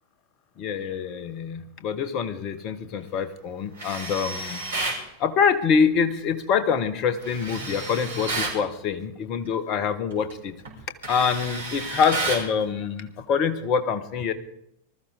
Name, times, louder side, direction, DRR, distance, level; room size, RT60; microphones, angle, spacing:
voice 1, 0.6-4.6 5.2-10.5 11.1-14.3, left 6 dB, 35° left, 11 dB, 1.2 m, -25 dB
Tools, 3.8-5.0 7.2-8.6 10.1-10.3 10.7-12.5, right 3 dB, 65° right, 4.7 m, -31 dB
20.0 x 13.5 x 3.8 m, 0.76 s
figure-of-eight pair, 90°, 0 cm